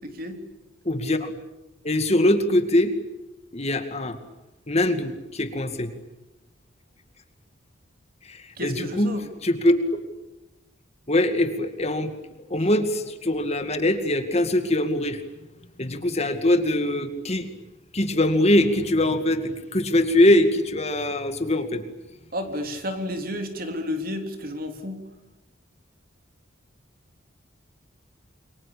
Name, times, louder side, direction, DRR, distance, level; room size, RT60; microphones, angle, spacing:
voice 1, 0.0-0.4 8.6-9.3 22.3-25.0, left 1 dB, 45° right, 6 dB, 3.6 m, -31 dB
voice 2, 0.8-1.3 1.8-2.9 3.5-4.2 4.7-5.9 8.2-9.2 9.4-9.7 11.1-12.1 12.5-15.2 15.8-17.5 17.9-21.8, left 1 dB, 35° left, 8 dB, 2.3 m, -22 dB
28.5 x 24.0 x 8.6 m, 1.0 s
head